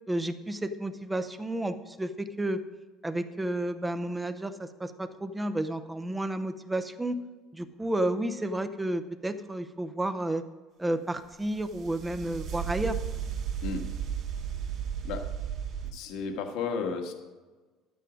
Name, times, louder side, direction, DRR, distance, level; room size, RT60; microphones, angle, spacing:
voice 1, 0.1-2.6 3.0-7.2 7.5-10.4 10.8-13.0, right 1 dB, 5° right, 9 dB, 0.6 m, -31 dB
sound 1, 11.3-15.9, right 8 dB, 45° right, 2.0 m, -34 dB
voice 2, 15.9-17.1, left 5 dB, 65° left, 4 dB, 1.5 m, -33 dB
12.0 x 9.3 x 5.0 m, 1.3 s
cardioid pair, 170°, 0 cm